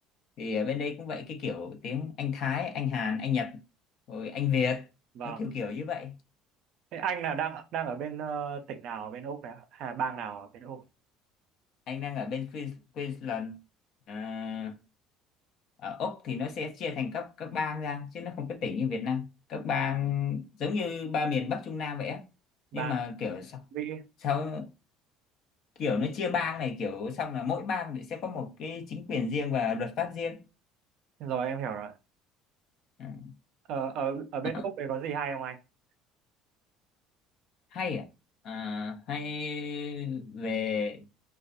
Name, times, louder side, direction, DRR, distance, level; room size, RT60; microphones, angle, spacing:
voice 1, 0.4-3.6 4.1-4.9 5.2-6.1 11.9-13.6 14.1-14.8 15.8-22.3 22.7-23.6 24.2-24.7 25.8-30.4 33.0-33.3 34.5-34.6 37.7-38.1 38.4-41.1, left 6 dB, 50° left, 0.6 m, -32 dB
voice 2, 6.9-10.8 22.7-23.0 23.7-24.1 31.2-31.9 33.7-35.6, right 7 dB, 55° right, 0.5 m, -34 dB
2.4 x 2.3 x 2.5 m
cardioid pair, 145°, 0 cm